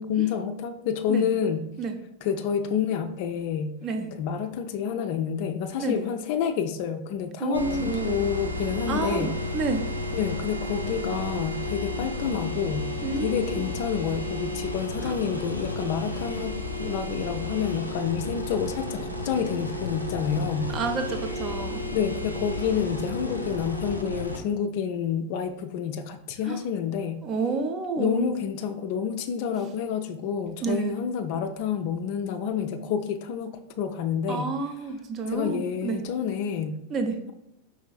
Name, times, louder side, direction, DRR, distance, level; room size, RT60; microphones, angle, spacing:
voice 1, 0.0-1.7 2.2-3.7 4.1-9.3 10.1-12.9 13.2-20.7 21.9-27.2 28.0-34.5 35.3-36.8, left 7 dB, 45° left, 7 dB, 0.3 m, -29 dB
voice 2, 7.4-8.2 8.9-9.8 13.0-13.7 15.0-15.2 20.7-21.8 26.5-26.6 27.2-28.3 30.6-31.0 34.3-36.0 36.9-37.2, right 4 dB, 30° right, 6 dB, 0.5 m, -29 dB
sound 1, 7.5-24.4, left 1 dB, 90° right, 0.5 m, -32 dB
5.3 x 3.1 x 2.3 m, 0.82 s
figure-of-eight pair, 90°, 0 cm